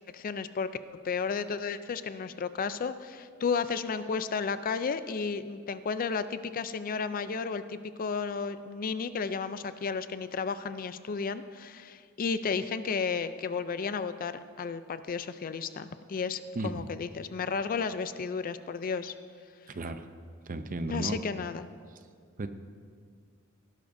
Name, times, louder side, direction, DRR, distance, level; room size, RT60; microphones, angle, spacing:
voice 1, 0.1-0.7 1.0-14.3 14.6-19.1 20.9-21.7, left 5 dB, 45° left, 12 dB, 0.4 m, -33 dB
voice 2, 16.6-16.9 19.7-20.1 20.5-21.2 22.4-22.5, right 2 dB, 40° right, 9 dB, 0.6 m, -34 dB
18.0 x 11.5 x 2.6 m, 2.1 s
head